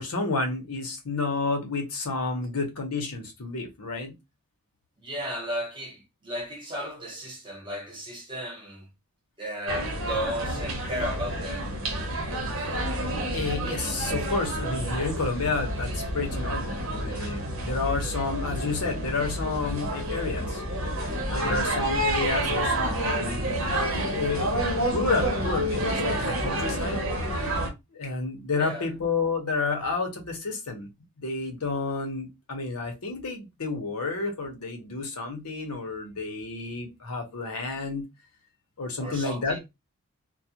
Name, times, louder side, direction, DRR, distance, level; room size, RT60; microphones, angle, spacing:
voice 1, 0.0-4.1 12.5-12.9 13.3-20.6 21.3-23.6 23.9-24.5 24.9-27.0 27.9-30.9 31.2-38.0 38.8-39.6, left 3 dB, 90° left, 0.8 m, -30 dB
voice 2, 5.0-8.9 9.4-11.7 28.5-28.9 39.0-39.6, equal, 20° right, 0.8 m, -34 dB
sound 1, 9.7-27.7, right 1 dB, 70° right, 0.8 m, -29 dB
2.3 x 2.1 x 2.7 m
head